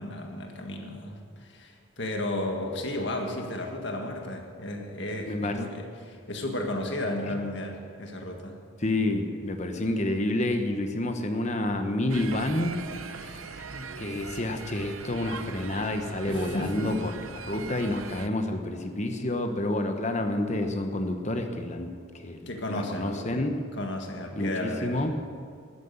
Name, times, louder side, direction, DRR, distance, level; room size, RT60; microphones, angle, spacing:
voice 1, 0.0-8.6 16.3-17.0 22.5-23.3 23.7-25.0, left 1 dB, 55° left, 2 dB, 1.8 m, -33 dB
voice 2, 5.2-5.6 7.3-7.4 8.8-23.5 24.3-25.1, left 1 dB, 35° left, 6 dB, 1.1 m, -29 dB
sound 1, 12.1-18.3, right 5 dB, 75° right, 0.7 m, -41 dB
13.0 x 9.8 x 8.0 m, 2.2 s
head